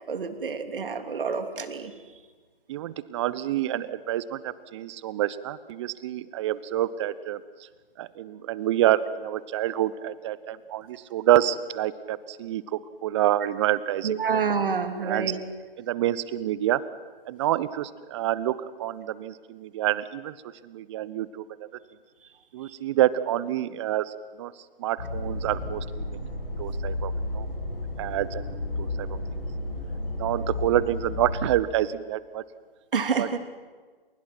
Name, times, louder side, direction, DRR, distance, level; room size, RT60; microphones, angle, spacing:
voice 1, 0.1-1.9 14.0-15.4 32.9-33.4, right 6 dB, 60° right, 7 dB, 3.2 m, -28 dB
voice 2, 2.7-7.4 8.0-14.4 15.0-15.4 15.8-16.8 17.3-20.3 20.6-21.4 22.5-24.5 24.8-26.2 26.6-27.5 28.0-29.1 30.2-32.4 33.2-33.4, right 13 dB, 30° right, 17 dB, 1.0 m, -27 dB
sound 1, 25.0-31.5, left 2 dB, 75° left, 7.5 m, -32 dB
29.5 x 28.5 x 6.1 m, 1.4 s
figure-of-eight pair, 135°, 30 cm